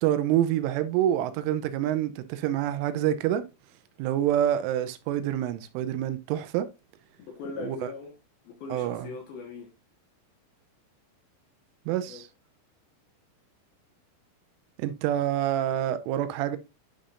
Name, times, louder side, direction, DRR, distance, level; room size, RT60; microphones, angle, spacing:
voice 1, 0.0-3.4 4.0-6.7 7.6-7.9 8.7-9.1 11.9-12.3 14.8-16.6, right 11 dB, 85° right, 3.1 m, -27 dB
voice 2, 7.2-8.1 8.4-9.7 11.9-12.2, left 4 dB, 65° left, 2.7 m, -40 dB
10.0 x 5.2 x 2.5 m
omnidirectional pair, 5.7 m